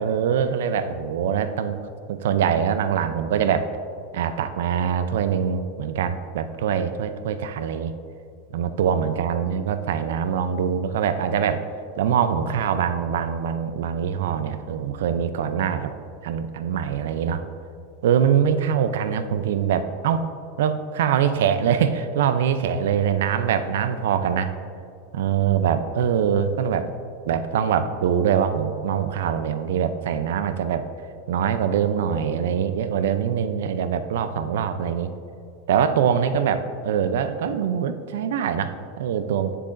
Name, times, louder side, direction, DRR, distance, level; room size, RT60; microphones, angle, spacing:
voice 1, 0.0-1.8 2.1-3.7 4.1-7.9 8.5-11.7 12.0-15.9 16.2-17.4 18.0-20.3 20.6-24.5 25.1-26.9 27.3-30.9 31.3-35.1 35.7-39.5, right 8 dB, 80° right, 11 dB, 0.4 m, -23 dB
9.9 x 6.7 x 2.5 m, 2.4 s
supercardioid pair, 155°, 0 cm